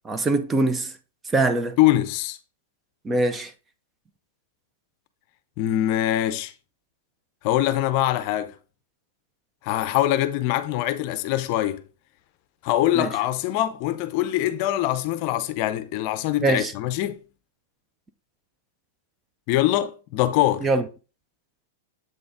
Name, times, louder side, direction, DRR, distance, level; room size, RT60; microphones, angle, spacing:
voice 1, 0.0-0.9 1.3-1.8 3.0-3.5 12.9-13.1 16.4-16.7 20.6-20.8, right 2 dB, 15° right, 0.5 m, -22 dB
voice 2, 1.8-2.4 5.6-6.5 7.4-8.5 9.6-11.8 12.6-17.2 19.5-20.7, left 14 dB, 45° left, 0.6 m, -23 dB
7.7 x 3.9 x 3.5 m
hypercardioid pair, 135°, 0 cm